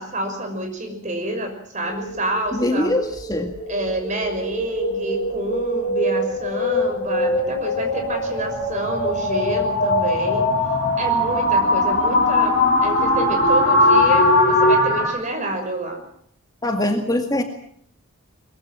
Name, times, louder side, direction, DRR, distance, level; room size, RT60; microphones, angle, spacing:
voice 1, 0.0-2.9 3.7-10.5 11.0-12.6 12.8-16.0, right 1 dB, 35° right, 5 dB, 6.0 m, -28 dB
sound 1, 1.8-15.1, left 1 dB, 35° left, 7.4 m, -21 dB
voice 2, 2.5-3.5 16.6-17.4, left 1 dB, 15° left, 4 dB, 2.0 m, -22 dB
23.0 x 22.0 x 7.5 m, 0.65 s
head